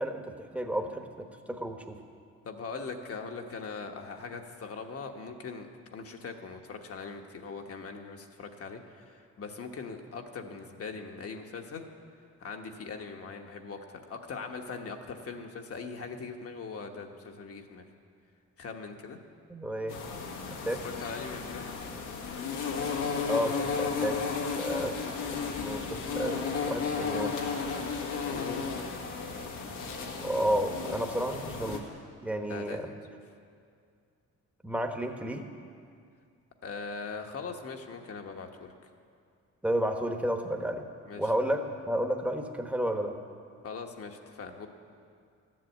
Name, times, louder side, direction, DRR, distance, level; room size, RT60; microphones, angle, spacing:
voice 1, 0.0-2.0 19.5-20.0 20.6-20.9 23.3-24.3 24.5-27.3 30.2-31.9 32.2-32.9 34.6-35.5 39.6-40.9 41.2-43.2, equal, 5° right, 4 dB, 1.1 m, -32 dB
voice 2, 2.4-11.9 12.4-17.8 18.6-19.2 20.8-21.7 26.9-27.1 27.4-28.7 32.3-32.9 36.6-38.7 41.1-41.2 43.6-44.7, left 4 dB, 50° left, 4 dB, 1.2 m, -41 dB
sound 1, 19.9-31.8, left 5 dB, 90° left, 1.6 m, -34 dB
12.5 x 7.6 x 8.2 m, 2.3 s
cardioid pair, 90°, 30 cm